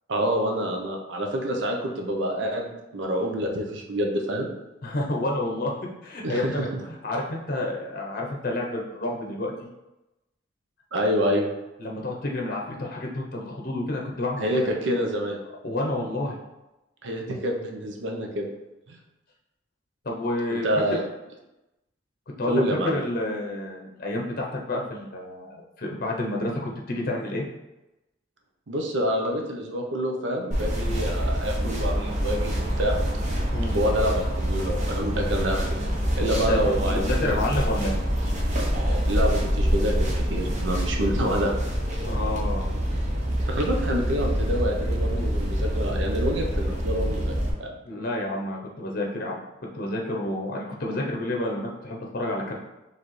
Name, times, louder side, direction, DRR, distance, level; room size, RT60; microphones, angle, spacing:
voice 1, 0.1-4.5 6.2-6.5 10.9-11.5 14.4-15.4 17.0-18.5 18.9-19.0 20.5-21.0 22.4-23.0 28.7-32.9 33.7-35.7 36.2-37.4 39.1-41.5 43.4-47.3 47.6-47.8, equal, 70° right, 1 dB, 0.7 m, -27 dB
voice 2, 4.8-5.7 6.0-6.7 7.0-9.5 11.8-14.5 15.6-16.4 20.0-20.7 22.4-27.5 33.5-33.8 36.5-36.6 36.9-37.9 42.1-42.7 47.9-49.4 49.7-52.5, left 1 dB, 50° left, -1 dB, 0.7 m, -29 dB
sound 1, 30.5-47.5, equal, 40° right, 0.8 m, -26 dB
4.7 x 3.3 x 3.1 m, 0.98 s
head